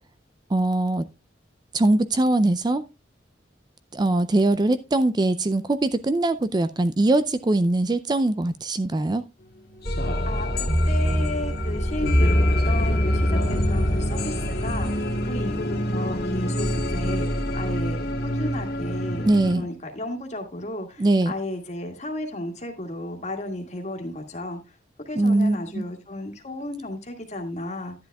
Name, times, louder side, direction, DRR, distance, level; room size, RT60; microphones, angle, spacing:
voice 1, 0.5-1.1 1.7-2.8 3.9-9.3 19.3-19.7 21.0-21.3 25.2-25.8, right 2 dB, 25° right, 12 dB, 0.4 m, -22 dB
sound 1, 9.8-19.5, equal, 60° left, 1.9 m, -24 dB
voice 2, 10.3-12.3 12.6-19.3 19.5-24.8 25.1-28.0, left 1 dB, 40° left, 4 dB, 1.9 m, -34 dB
11.5 x 10.5 x 2.3 m, 0.25 s
head